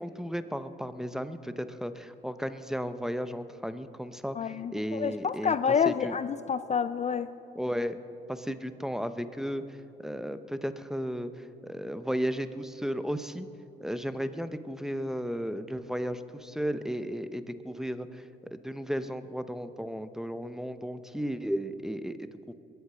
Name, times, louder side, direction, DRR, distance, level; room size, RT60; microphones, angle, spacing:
voice 1, 0.0-6.2 7.5-8.0 8.3-9.6 10.0-13.5 13.8-18.2 18.5-22.5, equal, ahead, 11 dB, 0.7 m, -34 dB
voice 2, 4.4-7.3, left 7 dB, 35° left, 13 dB, 0.4 m, -28 dB
22.0 x 8.1 x 6.8 m, 2.7 s
cardioid pair, 90°, 20 cm